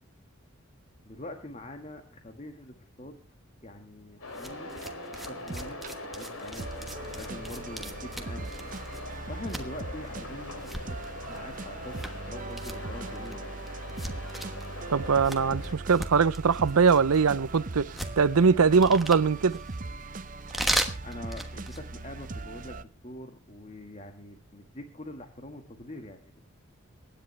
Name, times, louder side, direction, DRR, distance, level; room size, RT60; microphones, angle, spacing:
voice 1, 1.0-3.2 3.6-4.7 5.1-8.7 9.0-11.0 11.3-13.5 20.4-20.5 21.0-26.2, left 1 dB, 30° left, 1.6 m, -44 dB
sound 1, 4.2-15.7, left 2 dB, 80° left, 2.9 m, -43 dB
sound 2, 4.3-21.9, right 1 dB, ahead, 1.2 m, -38 dB
sound 3, 4.5-22.8, right 3 dB, 35° right, 0.6 m, -40 dB
voice 2, 14.9-17.9 18.2-19.6, right 5 dB, 85° right, 0.6 m, -22 dB
24.5 x 10.0 x 3.3 m
head